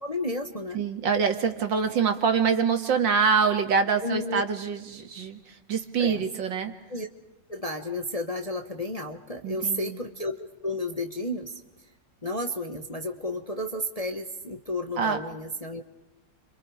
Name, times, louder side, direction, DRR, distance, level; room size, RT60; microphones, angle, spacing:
voice 1, 0.0-0.8 4.0-4.4 6.0-6.2 6.9-7.1 7.5-11.5 12.2-15.8, left 1 dB, 20° left, 5 dB, 1.1 m, -32 dB
voice 2, 0.7-6.7 9.4-10.0 15.0-15.2, right 6 dB, 70° right, 7 dB, 2.5 m, -25 dB
30.0 x 26.5 x 5.0 m, 0.95 s
omnidirectional pair, 2.1 m